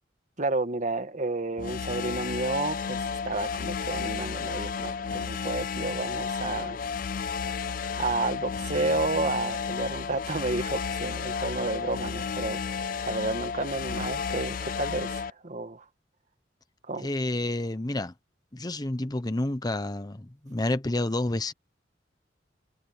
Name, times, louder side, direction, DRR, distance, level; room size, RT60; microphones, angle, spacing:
voice 1, 0.4-6.8 8.0-15.9 16.8-17.1, right 2 dB, 45° right, 1.6 m, -31 dB
sound 1, 1.6-15.3, left 6 dB, 50° left, 0.4 m, -32 dB
voice 2, 17.0-18.1 18.5-21.5, left 1 dB, 20° left, 0.9 m, -29 dB
head